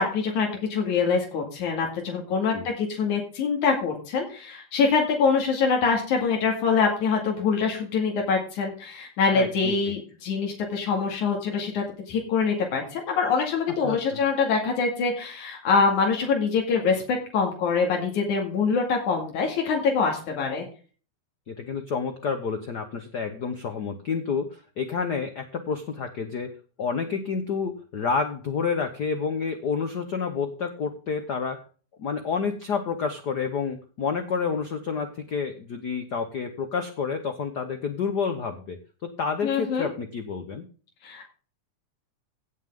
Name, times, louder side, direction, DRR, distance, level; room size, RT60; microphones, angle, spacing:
voice 1, 0.0-20.7 39.4-39.9 41.0-41.2, left 5 dB, 90° left, 0 dB, 3.6 m, -24 dB
voice 2, 9.3-9.9 13.8-14.2 21.5-26.5 26.8-31.6 32.0-40.6, left 5 dB, 70° left, 7 dB, 0.9 m, -29 dB
17.0 x 7.3 x 3.6 m, 0.39 s
omnidirectional pair, 3.3 m